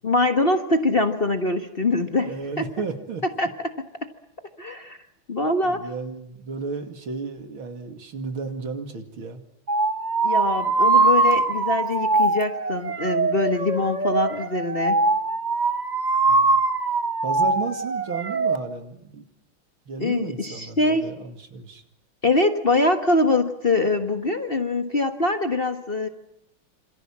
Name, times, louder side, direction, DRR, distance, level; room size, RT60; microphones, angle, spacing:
voice 1, 0.0-2.6 3.4-3.5 4.6-5.0 5.3-5.8 10.2-15.0 20.0-21.1 22.2-26.1, left 2 dB, 30° left, 7 dB, 1.4 m, -23 dB
voice 2, 2.2-3.2 5.6-9.4 16.3-16.6 17.2-19.2 19.9-21.8, right 4 dB, 70° right, 7 dB, 3.3 m, -33 dB
sound 1, 9.7-18.6, right 3 dB, 25° right, 1.1 m, -22 dB
27.5 x 26.5 x 7.4 m, 0.78 s
omnidirectional pair, 2.3 m